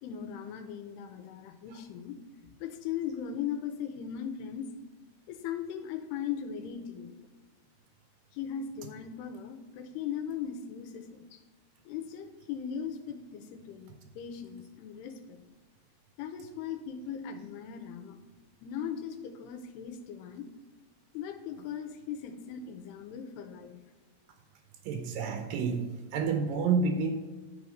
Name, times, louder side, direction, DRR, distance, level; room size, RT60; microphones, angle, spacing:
voice 1, 0.0-2.2 2.4-4.7 5.3-7.1 8.3-11.4 11.9-15.4 16.2-18.2 18.6-20.5 21.1-23.7, left 8 dB, 85° left, 8 dB, 2.7 m, -38 dB
voice 2, 24.9-27.1, right 5 dB, 80° right, 5 dB, 2.1 m, -29 dB
12.0 x 4.1 x 5.1 m, 1.3 s
omnidirectional pair, 4.8 m